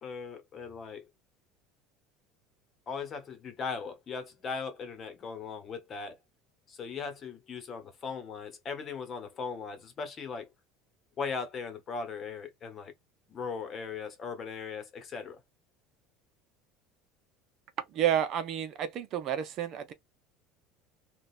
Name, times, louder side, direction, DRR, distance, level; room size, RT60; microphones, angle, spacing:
voice 1, 0.0-1.0 2.9-6.2 6.7-10.5 11.2-12.9 13.3-15.4, left 5 dB, 35° left, 1.2 m, -38 dB
voice 2, 17.9-19.9, right 10 dB, 50° right, 0.7 m, -30 dB
3.9 x 2.4 x 2.5 m
supercardioid pair, 125°, 0 cm